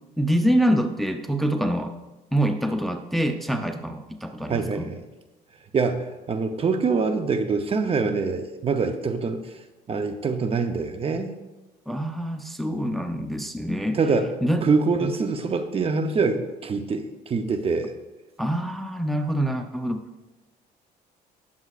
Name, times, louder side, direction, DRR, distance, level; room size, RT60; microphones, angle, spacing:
voice 1, 0.2-1.9 2.3-4.9 11.9-14.0 14.4-14.6 15.0-15.1 18.4-20.0, right 1 dB, ahead, 5 dB, 0.6 m, -25 dB
voice 2, 4.5-5.0 5.7-9.6 9.9-11.3 13.9-14.3 14.6-17.9, right 4 dB, 35° right, 8 dB, 0.7 m, -25 dB
18.0 x 7.2 x 2.5 m, 1.1 s
cardioid pair, 110°, 17 cm